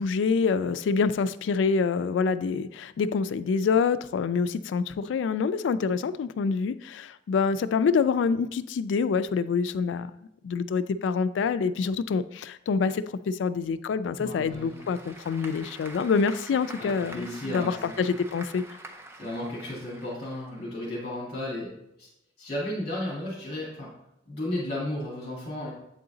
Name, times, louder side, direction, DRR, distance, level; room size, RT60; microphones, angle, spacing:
voice 1, 0.0-10.1 10.4-18.6, left 5 dB, 85° left, 14 dB, 0.3 m, -26 dB
voice 2, 14.2-14.9 16.8-18.1 19.2-21.7 22.0-22.1 22.4-23.9 24.2-25.7, left 1 dB, 35° left, -6 dB, 1.7 m, -34 dB
Applause / Crowd, 14.3-20.9, right 1 dB, 15° right, 0.5 m, -46 dB
7.8 x 3.8 x 3.8 m, 0.82 s
head